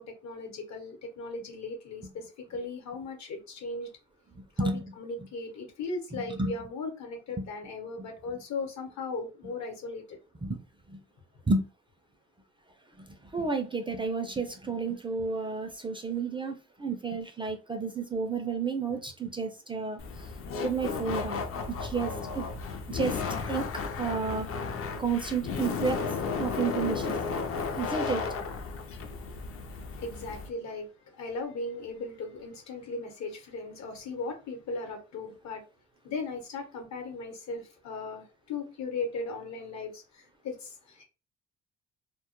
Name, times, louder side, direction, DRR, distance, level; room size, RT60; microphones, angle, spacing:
voice 1, 0.0-3.9 4.6-10.2 30.0-30.9 31.2-35.6 36.0-41.0, left 3 dB, 65° left, 0.9 m, -37 dB
voice 2, 6.1-6.5 10.4-10.6 10.9-11.0 11.5-11.6 13.3-20.0 20.6-21.4 21.8-22.5 22.9-23.2 23.5-23.7 24.0-24.5 25.0-26.0 26.4-27.2 27.8-28.2, right 4 dB, 15° right, 0.4 m, -31 dB
Laughter, 20.0-30.5, left 5 dB, 50° left, 0.5 m, -34 dB
2.2 x 2.0 x 2.9 m
cardioid pair, 90°, 30 cm